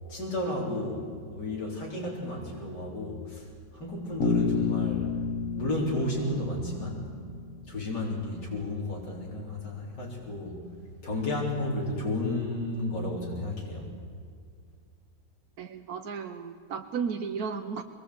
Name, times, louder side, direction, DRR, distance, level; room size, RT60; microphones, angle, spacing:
voice 1, 0.1-5.1 5.6-7.1 7.7-10.6 11.0-13.9, left 1 dB, 70° left, -4 dB, 4.6 m, -32 dB
Bass guitar, 4.2-8.1, left 5 dB, 45° left, 1.8 m, -31 dB
voice 2, 15.6-17.8, right 6 dB, 65° right, 4 dB, 1.3 m, -34 dB
24.0 x 20.5 x 8.3 m, 2.1 s
omnidirectional pair, 1.9 m